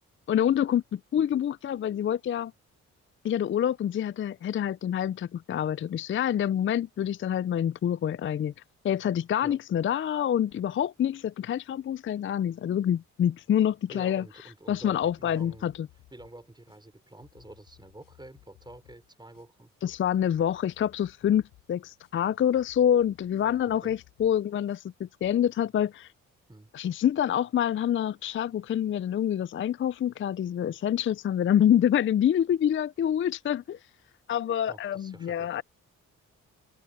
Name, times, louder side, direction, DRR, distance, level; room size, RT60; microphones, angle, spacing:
voice 1, 0.3-2.5 3.2-8.5 8.8-14.2 14.7-15.9 19.8-21.4 21.7-26.1 26.7-33.8 34.3-35.6, left 10 dB, 40° left, 0.4 m, -26 dB
voice 2, 13.9-15.7 16.1-19.7 23.8-23.9 26.5-26.7 34.7-35.6, right 1 dB, 15° right, 5.0 m, -48 dB
sound 1, 14.7-25.3, left 17 dB, 90° left, 7.9 m, -59 dB
supercardioid pair, 60°, 33 cm